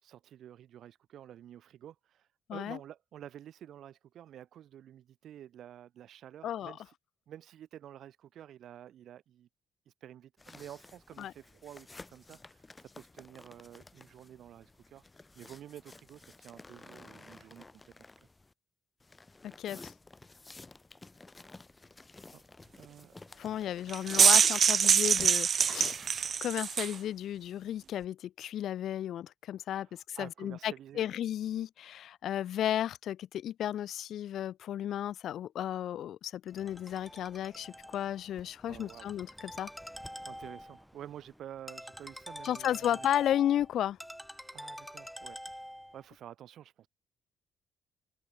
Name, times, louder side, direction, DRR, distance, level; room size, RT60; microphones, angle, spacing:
voice 1, 0.0-6.8 7.3-9.5 10.0-15.0 15.4-17.7 22.3-22.4 22.8-23.2 29.8-31.1 38.7-39.1 40.3-43.1 44.5-45.4 45.9-46.9, right 11 dB, 70° right, 6.8 m, -50 dB
voice 2, 6.4-6.8 11.2-11.3 19.4-19.9 23.4-26.0 26.4-39.7 42.4-44.0, left 11 dB, 75° left, 0.4 m, -34 dB
sound 1, 10.4-18.5 19.0-26.5, left 3 dB, 20° left, 5.7 m, -52 dB
sound 2, 23.9-27.0, right 7 dB, 50° right, 0.5 m, -24 dB
Ringtone, 36.5-46.0, equal, ahead, 1.1 m, -47 dB
cardioid pair, 90°, 0 cm